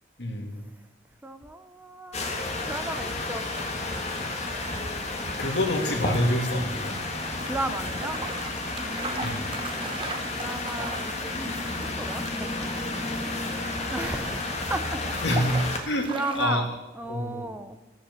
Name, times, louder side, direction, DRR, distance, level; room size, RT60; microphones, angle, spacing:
voice 1, 0.2-0.6 5.4-7.0 9.2-9.5 15.2-15.6 15.9-16.1 16.3-16.6 17.1-17.4, left 1 dB, 65° left, 2 dB, 2.2 m, -27 dB
voice 2, 1.2-2.4 2.7-3.5 7.4-8.2 8.8-9.6 10.3-12.7 13.3-13.4 13.9-17.8, right 2 dB, 10° right, 9 dB, 0.4 m, -35 dB
sound 1, 2.1-15.8, left 2 dB, 35° left, 1.6 m, -31 dB
sound 2, 2.5-16.5, right 3 dB, 30° right, 0.9 m, -41 dB
16.0 x 5.7 x 6.9 m, 1.1 s
head